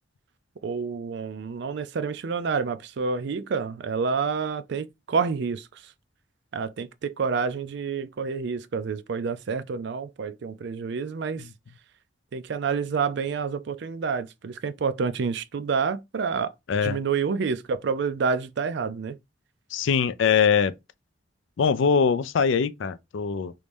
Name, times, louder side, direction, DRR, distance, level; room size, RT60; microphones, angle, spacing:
voice 1, 0.6-5.6 6.5-11.4 12.3-16.5 16.8-19.2, right 5 dB, 55° right, 0.4 m, -28 dB
voice 2, 16.7-17.0 19.7-20.7 21.6-23.5, left 6 dB, 65° left, 0.4 m, -22 dB
3.1 x 2.6 x 3.4 m
head